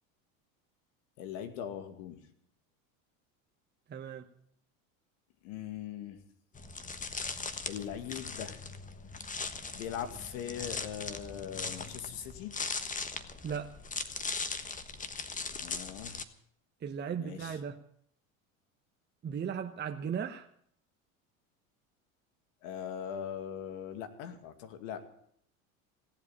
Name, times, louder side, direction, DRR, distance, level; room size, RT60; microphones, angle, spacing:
voice 1, 1.2-2.3 5.4-6.2 7.6-8.6 9.7-12.6 15.5-16.1 17.2-17.6 22.6-25.0, left 9 dB, 70° left, 2.4 m, -40 dB
voice 2, 3.9-4.3 13.4-13.7 16.8-17.8 19.2-20.5, right 7 dB, 25° right, 1.0 m, -36 dB
sound 1, 6.5-16.2, left 4 dB, 20° left, 1.3 m, -39 dB
17.5 x 8.0 x 9.9 m
supercardioid pair, 95°, 41 cm